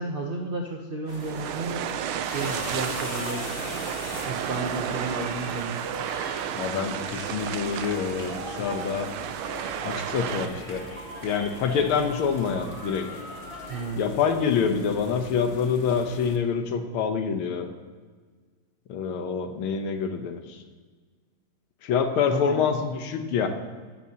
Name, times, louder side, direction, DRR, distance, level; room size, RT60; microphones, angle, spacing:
voice 1, 0.0-3.7 4.2-5.8 13.6-14.0 22.3-22.6, right 2 dB, 65° right, 1 dB, 0.5 m, -33 dB
sound 1, 1.1-16.4, left 4 dB, 50° left, 0.9 m, -43 dB
sound 2, 1.1-10.5, right 10 dB, 80° right, 1.4 m, -33 dB
sound 3, 1.8-13.8, right 1 dB, 25° right, 2.8 m, -41 dB
voice 2, 6.5-9.1 9.8-10.9 11.2-13.1 14.0-17.7 18.9-20.6 21.8-23.5, left 6 dB, 85° left, 7 dB, 1.8 m, -26 dB
15.0 x 10.5 x 2.9 m, 1.5 s
omnidirectional pair, 2.3 m